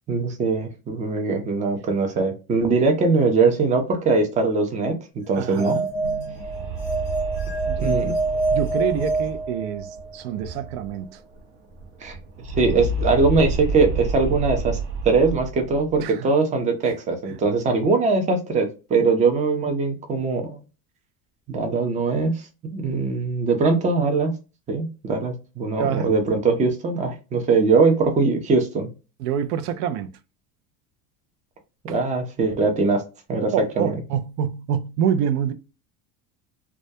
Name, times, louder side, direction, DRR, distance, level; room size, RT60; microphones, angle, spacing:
voice 1, 0.1-4.9 5.3-5.8 7.8-8.1 12.0-12.2 12.5-14.8 15.0-20.6 21.5-24.3 24.7-28.9 31.8-33.0 33.3-33.9, right 4 dB, 15° right, 0.5 m, -21 dB
sound 1, 5.3-10.1, right 3 dB, 25° left, 0.9 m, -26 dB
voice 2, 5.4-5.9 7.7-8.1 8.5-11.2 16.0-16.3 17.3-17.4 25.8-26.1 29.2-30.2 31.9-32.0 33.5-35.5, right 8 dB, 85° right, 0.5 m, -27 dB
sound 2, 5.9-11.1 11.3-11.4 11.7-16.0, right 3 dB, 55° right, 0.8 m, -30 dB
2.3 x 2.1 x 2.6 m
supercardioid pair, 130°, 44 cm